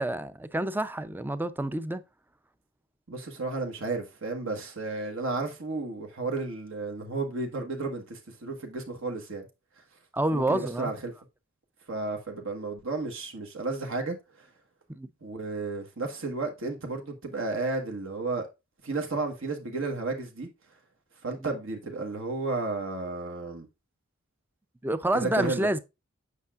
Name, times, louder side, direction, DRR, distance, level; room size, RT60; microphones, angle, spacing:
voice 1, 0.0-2.0 10.1-10.9 14.9-15.1 24.8-25.8, right 1 dB, 10° right, 0.4 m, -28 dB
voice 2, 3.1-9.4 10.3-11.1 11.9-14.5 15.2-18.5 18.8-20.5 21.2-23.7 25.1-25.7, right 3 dB, 65° right, 1.3 m, -33 dB
8.2 x 5.7 x 2.4 m
head